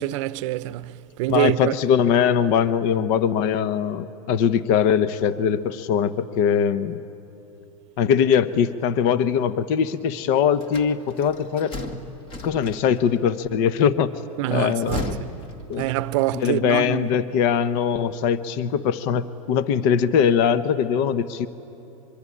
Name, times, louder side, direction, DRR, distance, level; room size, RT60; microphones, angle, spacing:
voice 1, 0.0-1.7 14.4-15.3 15.8-17.0, right 16 dB, 55° right, 0.7 m, -25 dB
voice 2, 1.3-7.0 8.0-11.8 12.4-14.1 14.5-15.2 15.7-15.9 16.3-21.5, left 8 dB, 50° left, 0.9 m, -21 dB
sound 1, 10.6-13.2 14.5-16.3, left 1 dB, 30° left, 2.0 m, -35 dB
24.0 x 23.5 x 9.8 m
supercardioid pair, 135°, 18 cm